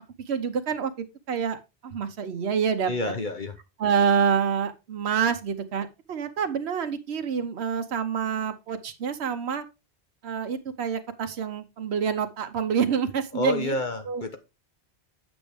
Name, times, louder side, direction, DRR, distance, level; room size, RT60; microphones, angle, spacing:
voice 1, 0.3-2.9 3.8-9.6 10.2-13.7 14.1-14.4, right 7 dB, 80° right, 8 dB, 1.1 m, -27 dB
voice 2, 2.9-3.5 13.3-14.4, left 2 dB, 50° left, 7 dB, 1.1 m, -29 dB
8.8 x 6.1 x 3.5 m, 0.26 s
omnidirectional pair, 1.1 m